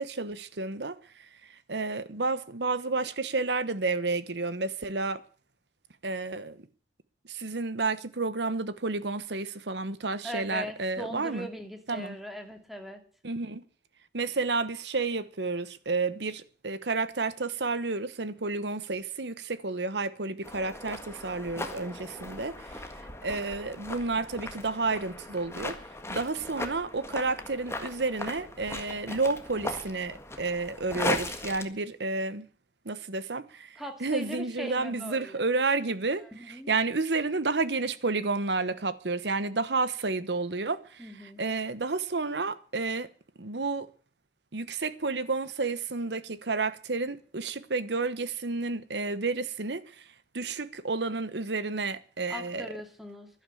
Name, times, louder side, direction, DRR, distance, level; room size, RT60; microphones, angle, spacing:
voice 1, 0.0-5.2 6.0-6.6 7.3-11.5 11.9-12.2 13.2-13.6 14.1-22.9 23.2-25.8 26.1-32.5 32.8-43.1 43.4-43.9 44.5-50.1 50.3-52.7, right 3 dB, 75° right, 1.1 m, -31 dB
voice 2, 10.2-13.0 33.8-35.4 36.3-36.7 41.0-41.4 52.3-53.3, equal, ahead, 2.4 m, -40 dB
sound 1, 20.4-31.6, left 2 dB, 15° left, 1.6 m, -38 dB
12.0 x 11.0 x 8.4 m
head